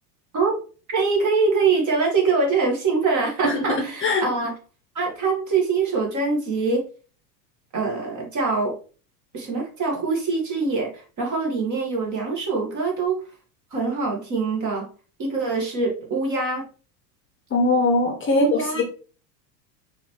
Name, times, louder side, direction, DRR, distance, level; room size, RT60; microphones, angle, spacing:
voice 1, 0.9-4.5 5.0-6.8 7.7-8.7 9.3-13.2 13.7-14.9 15.2-16.6 18.3-18.8, right 4 dB, 35° right, -1 dB, 1.8 m, -24 dB
voice 2, 17.5-18.8, left 2 dB, 25° left, 2 dB, 0.9 m, -20 dB
4.8 x 3.1 x 3.2 m, 0.39 s
hypercardioid pair, 85°, 50 cm